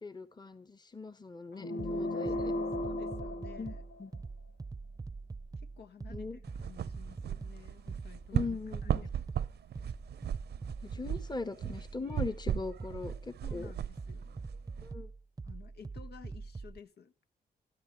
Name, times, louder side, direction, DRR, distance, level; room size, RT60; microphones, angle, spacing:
voice 1, 0.0-2.5 3.6-3.7 4.0-4.1 6.1-6.4 8.3-9.0 10.8-13.7 14.8-15.1, left 3 dB, 25° left, 1.2 m, -40 dB
voice 2, 1.5-3.8 5.6-6.3 6.6-9.1 13.4-14.4 15.4-17.1, left 7 dB, 85° left, 1.2 m, -54 dB
sound 1, 1.6-4.3, left 1 dB, 55° left, 1.1 m, -35 dB
sound 2, 1.8-16.8, right 4 dB, 20° right, 0.7 m, -44 dB
sound 3, 6.4-14.9, right 10 dB, 85° right, 0.7 m, -37 dB
14.0 x 13.0 x 5.9 m
cardioid pair, 90°, 17 cm